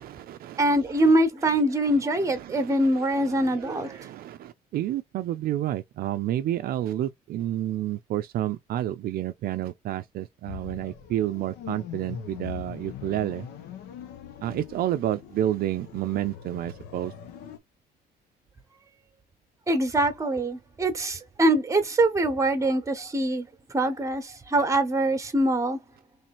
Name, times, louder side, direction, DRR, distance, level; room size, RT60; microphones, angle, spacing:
voice 1, 0.0-1.1 1.4-1.6 1.8-13.5 14.4-17.1, right 12 dB, 60° right, 0.5 m, -30 dB
voice 2, 0.6-4.1 19.7-23.5 23.7-25.8, right 1 dB, 20° right, 1.1 m, -24 dB
sound 1, 10.5-17.6, left 9 dB, 85° left, 0.9 m, -42 dB
3.3 x 2.9 x 4.3 m
cardioid pair, 110°, 17 cm